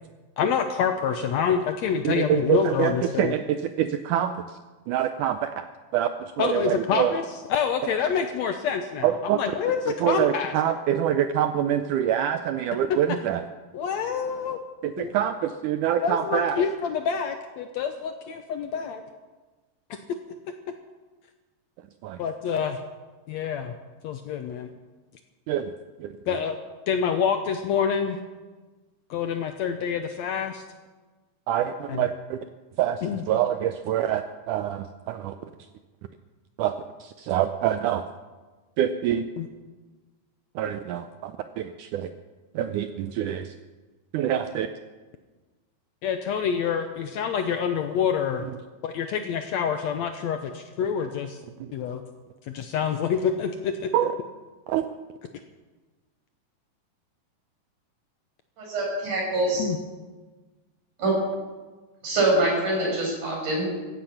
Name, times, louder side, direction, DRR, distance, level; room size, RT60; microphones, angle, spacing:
voice 1, 0.4-3.3 6.4-7.2 7.5-10.5 13.7-14.6 15.0-15.1 16.0-19.0 19.9-20.0 22.2-22.8 23.3-23.8 24.0-24.7 26.3-26.6 26.9-28.2 29.1-30.6 31.9-32.0 33.0-33.2 39.4-39.5 46.0-48.4 48.8-51.4 51.7-52.0 52.5-53.9 59.6-59.8, left 7 dB, 80° left, 7 dB, 1.5 m, -27 dB
voice 2, 2.0-4.6 4.9-5.7 5.9-7.2 9.0-9.4 9.9-13.4 14.8-16.6 22.0-22.2 25.5-25.7 26.0-26.2 31.5-32.4 32.8-35.4 36.6-38.1 38.8-39.2 40.6-42.1 42.5-43.5 44.1-44.7 51.6-51.7 53.9-54.1 54.7-54.9, right 10 dB, 80° right, 9 dB, 1.8 m, -26 dB
voice 3, 58.6-59.7 61.0-61.1 62.0-63.7, right 2 dB, 60° right, -3 dB, 7.5 m, -24 dB
15.5 x 15.5 x 5.8 m, 1.3 s
omnidirectional pair, 4.2 m